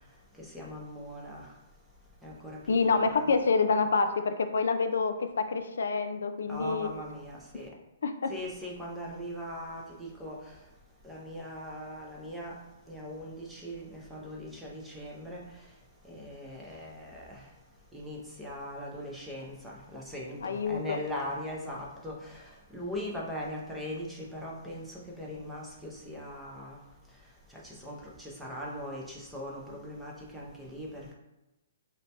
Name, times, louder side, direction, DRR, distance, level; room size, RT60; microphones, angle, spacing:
voice 1, 0.4-1.5 2.2-3.3 6.5-7.7 8.3-10.4 11.0-12.6 12.9-15.4 16.1-17.4 17.9-26.8 27.5-31.1, equal, ahead, -4 dB, 0.4 m, -40 dB
voice 2, 2.7-6.9 8.0-8.3 20.4-20.8, left 4 dB, 85° left, 8 dB, 0.4 m, -27 dB
4.0 x 2.2 x 2.7 m, 1.0 s
hypercardioid pair, 175°, 0 cm